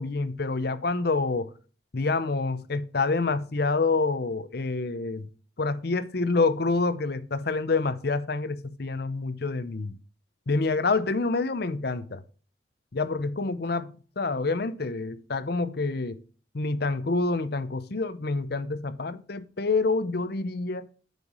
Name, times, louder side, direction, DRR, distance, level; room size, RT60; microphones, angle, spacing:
voice 1, 0.0-1.5 1.9-5.3 5.6-10.0 10.5-12.2 12.9-16.2 16.5-20.9, left 3 dB, 55° left, 0.7 m, -27 dB
9.2 x 4.8 x 5.4 m
head